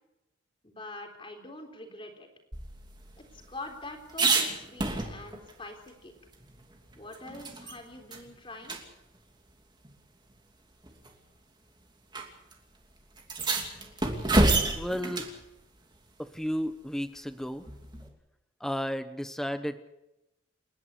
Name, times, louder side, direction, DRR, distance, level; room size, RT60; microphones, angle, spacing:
voice 1, 0.6-2.3 3.3-6.1 7.0-8.8, left 2 dB, 25° left, 4 dB, 3.6 m, -44 dB
sound 1, 2.5-5.5 5.9-6.0 6.3-7.8 8.1-8.2 8.6-8.8 9.8-9.9 10.8-11.1 12.1-12.2 12.5-12.6 13.2-15.4 17.6-18.1, right 2 dB, 20° right, 2.8 m, -29 dB
voice 2, 14.8-15.3 16.2-17.7 18.6-19.9, equal, ahead, 10 dB, 1.1 m, -33 dB
29.0 x 11.0 x 9.7 m, 0.93 s
head